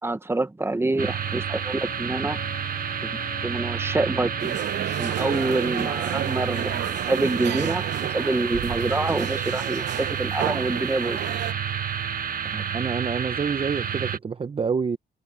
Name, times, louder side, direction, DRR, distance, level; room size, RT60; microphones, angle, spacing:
voice 1, 0.0-2.4 3.4-4.6 5.0-11.2, right 2 dB, 15° right, 1.3 m, -26 dB
sound 1, 1.0-14.2, right 7 dB, 50° right, 1.3 m, -30 dB
sound 2, 1.1-6.9, left 6 dB, 50° left, 4.7 m, -46 dB
sound 3, 4.4-11.5, right 11 dB, 80° right, 0.8 m, -32 dB
voice 2, 12.5-15.0, right 5 dB, 30° right, 0.8 m, -27 dB
cardioid pair, 125°, 18 cm